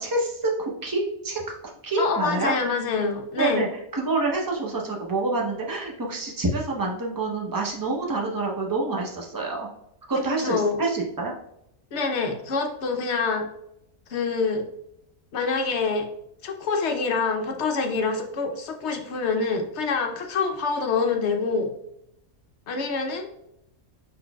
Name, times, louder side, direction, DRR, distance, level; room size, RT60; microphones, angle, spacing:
voice 1, 0.0-1.6 1.8-2.6 3.4-3.7 3.9-9.7 10.1-11.3, right 2 dB, 20° right, 0 dB, 0.5 m, -27 dB
voice 2, 2.0-3.6 10.4-10.8 11.9-13.5 14.1-14.7 15.3-16.1 16.4-21.7 22.7-23.4, left 4 dB, 60° left, 4 dB, 0.9 m, -26 dB
5.2 x 4.1 x 2.3 m, 0.77 s
omnidirectional pair, 1.5 m